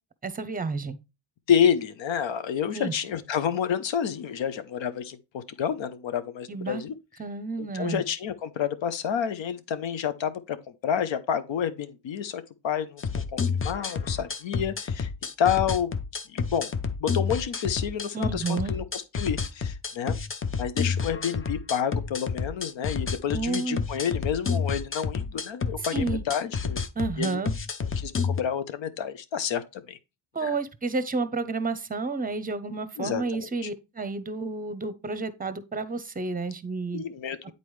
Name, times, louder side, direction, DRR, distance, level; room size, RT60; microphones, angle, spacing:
voice 1, 0.2-1.0 2.7-2.9 6.5-6.8 7.2-8.0 18.1-18.7 23.3-23.8 25.9-26.2 27.0-27.5 30.3-37.0, right 3 dB, 20° right, 0.8 m, -30 dB
voice 2, 1.5-6.9 7.6-10.6 10.8-15.1 15.4-15.9 16.3-16.7 17.0-20.2 20.6-26.9 27.2-27.4 28.0-30.0 30.4-30.5 33.0-33.7 36.9-37.5, left 8 dB, 65° left, 0.9 m, -29 dB
sound 1, 13.0-28.4, left 5 dB, 25° left, 0.6 m, -30 dB
8.4 x 4.1 x 3.2 m
cardioid pair, 70°, 48 cm